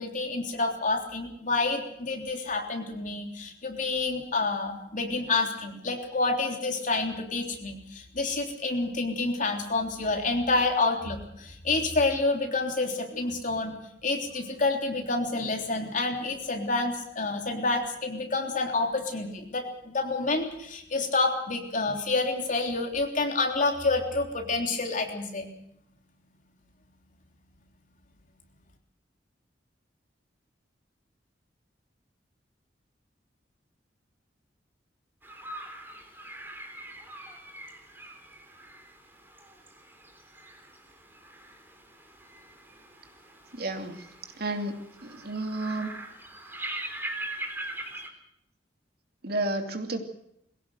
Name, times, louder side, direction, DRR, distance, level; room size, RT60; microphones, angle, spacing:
voice 1, 0.0-13.7 14.0-25.5, left 3 dB, 45° left, 2 dB, 3.5 m, -28 dB
sound 1, 35.2-48.1, right 1 dB, 10° right, 3.5 m, -42 dB
voice 2, 43.5-44.1 44.3-44.8 45.0-45.9 49.2-50.0, right 2 dB, 60° right, 5 dB, 2.8 m, -31 dB
22.5 x 16.5 x 7.9 m, 0.78 s
head